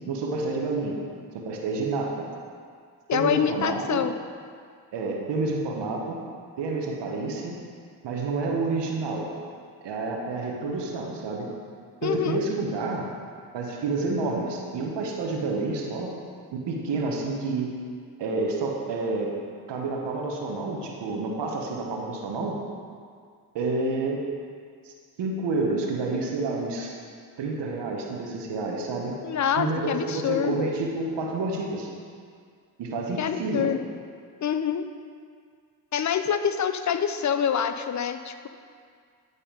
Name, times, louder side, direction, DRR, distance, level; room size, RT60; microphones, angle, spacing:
voice 1, 0.1-1.0 1.3-2.2 3.1-4.0 4.9-6.2 6.6-7.6 8.0-9.3 9.8-11.5 12.0-13.0 13.5-16.1 16.5-17.7 18.2-19.3 19.7-22.6 23.5-24.2 24.8-26.9 27.4-29.1 29.6-31.9 32.8-33.7, right 3 dB, 75° right, 0 dB, 1.2 m, -29 dB
voice 2, 3.1-4.1 12.0-12.4 29.2-30.7 33.2-33.8 34.4-34.8 35.9-38.5, left 8 dB, 45° left, 10 dB, 0.5 m, -26 dB
9.2 x 4.1 x 5.1 m, 2.1 s
supercardioid pair, 50°, 43 cm